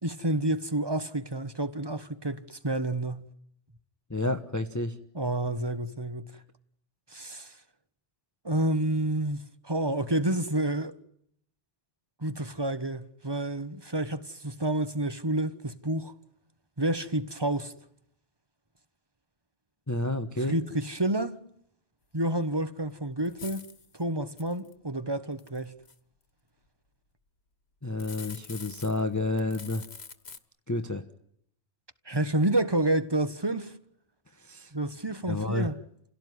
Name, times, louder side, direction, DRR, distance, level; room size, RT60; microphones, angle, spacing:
voice 1, 0.0-3.3 5.1-6.3 7.1-7.6 8.4-10.9 12.2-16.1 16.8-17.7 20.5-21.4 22.1-23.7 23.9-25.7 32.0-33.7 34.7-35.8, right 1 dB, 20° right, 1.3 m, -29 dB
voice 2, 4.1-5.0 6.3-6.4 19.9-20.6 27.8-29.8 30.7-31.0 34.4-34.7 35.2-35.7, left 2 dB, 15° left, 1.1 m, -30 dB
sound 1, 22.8-22.9 23.2-23.9 24.4-24.7 25.4-25.9 27.8-29.1 29.4-30.4, left 5 dB, 65° left, 1.8 m, -45 dB
29.5 x 17.0 x 9.6 m
omnidirectional pair, 1.2 m